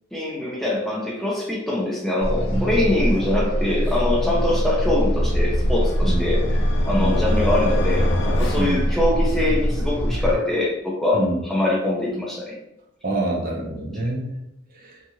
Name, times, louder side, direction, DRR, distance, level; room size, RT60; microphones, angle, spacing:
voice 1, 0.1-12.6, left 1 dB, ahead, -4 dB, 0.5 m, -23 dB
sound 1, 2.2-10.4, equal, 30° left, 0.9 m, -22 dB
sound 2, 5.2-9.6, left 2 dB, 65° left, 0.5 m, -30 dB
voice 2, 13.0-14.3, right 2 dB, 50° right, -1 dB, 0.6 m, -25 dB
2.7 x 2.4 x 2.8 m, 0.83 s
head